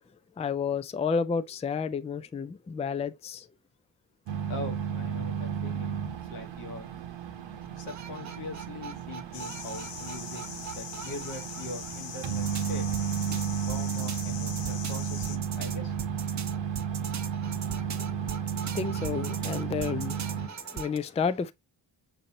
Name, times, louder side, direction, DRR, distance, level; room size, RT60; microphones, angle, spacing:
voice 1, 0.4-3.5 17.9-18.2 18.7-21.5, left 6 dB, 15° left, 0.4 m, -31 dB
sound 1, 4.3-20.5, right 7 dB, 65° right, 0.9 m, -33 dB
voice 2, 4.5-6.0 6.3-6.9 7.8-12.9 13.2-13.4 13.7-16.0, left 2 dB, 85° left, 1.5 m, -42 dB
sound 2, 7.7-12.2 12.5-21.0, right 8 dB, 35° right, 0.6 m, -41 dB
sound 3, 9.3-15.4, left 8 dB, 60° left, 0.9 m, -42 dB
6.5 x 2.6 x 2.9 m
cardioid pair, 55°, 48 cm